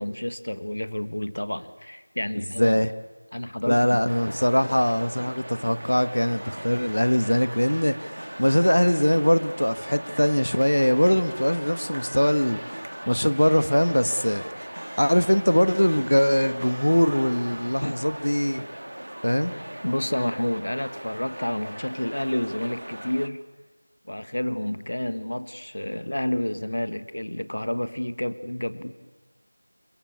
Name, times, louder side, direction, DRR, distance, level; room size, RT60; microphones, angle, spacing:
voice 1, 0.0-2.8 3.3-4.1 19.8-23.4 24.1-28.9, left 1 dB, 55° left, 12 dB, 1.5 m, -29 dB
voice 2, 2.6-2.9 3.7-14.4 15.0-18.6 19.2-19.5, equal, 85° left, 11 dB, 1.5 m, -22 dB
sound 1, 4.1-23.3, right 1 dB, 55° right, 1.7 m, -39 dB
29.0 x 21.5 x 8.9 m, 1.3 s
figure-of-eight pair, 180°, 0 cm